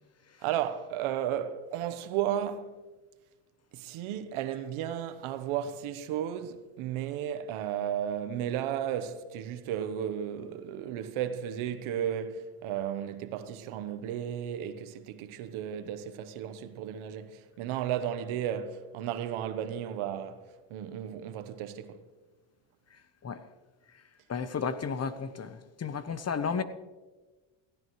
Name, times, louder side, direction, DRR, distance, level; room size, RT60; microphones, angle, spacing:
voice 1, 0.4-2.7 3.7-22.0, right 10 dB, 80° right, 1.1 m, -34 dB
voice 2, 24.3-26.6, left 6 dB, 30° left, 0.9 m, -33 dB
17.5 x 15.5 x 3.2 m
cardioid pair, 100°, 48 cm